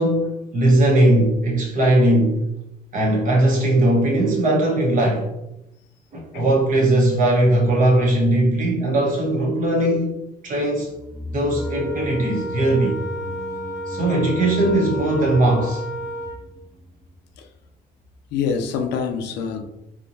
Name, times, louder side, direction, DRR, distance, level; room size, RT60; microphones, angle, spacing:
voice 1, 0.0-2.4 2.9-5.3 6.1-10.9 11.3-13.0 13.9-15.8, right 1 dB, 50° right, 1.2 m, -19 dB
sound 1, 10.8-17.2 17.4-17.5, equal, 5° right, 0.3 m, -36 dB
Wind instrument woodwind instrument, 11.5-16.4, equal, 15° left, 0.8 m, -31 dB
voice 2, 18.3-19.6, left 6 dB, 90° left, 0.5 m, -25 dB
3.6 x 3.0 x 2.7 m
cardioid pair, 110°, 17 cm